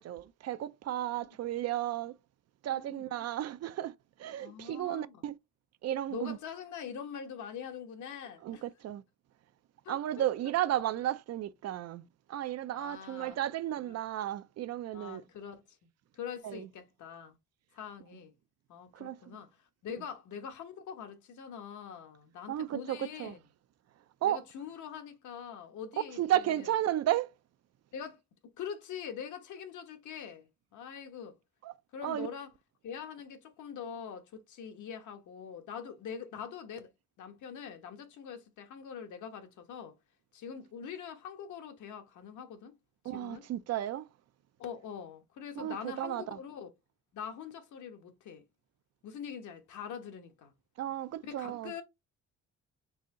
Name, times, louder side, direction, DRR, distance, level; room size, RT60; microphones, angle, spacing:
voice 1, 0.0-2.1 2.6-3.9 4.2-5.4 5.8-6.4 8.4-9.0 9.9-15.2 16.4-16.7 18.9-19.4 22.5-23.4 24.2-24.4 26.2-27.3 31.6-31.7 32.0-32.3 43.0-44.1 45.6-46.4 50.8-51.7, right 12 dB, 60° right, 0.5 m, -33 dB
voice 2, 2.7-3.1 4.4-5.2 6.1-8.6 9.8-10.2 12.7-13.4 13.8-14.0 14.9-15.6 16.1-17.4 17.7-18.3 18.7-19.5 19.8-23.4 24.2-26.2 26.4-26.7 27.9-28.2 28.6-31.3 31.9-32.5 32.8-36.9 37.2-39.9 40.3-42.7 43.1-43.4 44.6-46.7 47.1-48.4 49.0-50.5 51.2-51.8, left 7 dB, 75° left, 1.1 m, -43 dB
4.2 x 2.7 x 3.7 m
cardioid pair, 90°, 30 cm